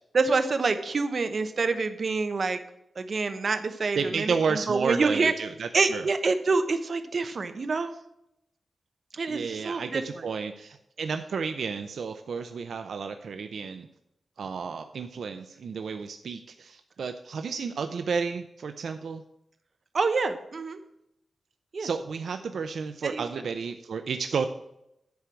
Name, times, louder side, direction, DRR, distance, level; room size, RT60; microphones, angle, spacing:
voice 1, 0.1-2.6 3.0-5.3 5.7-7.9 9.1-10.0 19.9-20.8 21.7-21.9 23.0-23.2, right 4 dB, 50° right, 8 dB, 1.0 m, -26 dB
voice 2, 3.9-6.1 9.3-13.9 14.4-19.2 21.8-24.5, right 5 dB, 80° right, 8 dB, 0.5 m, -32 dB
10.5 x 4.6 x 7.6 m, 0.81 s
wide cardioid pair, 110°, 0 cm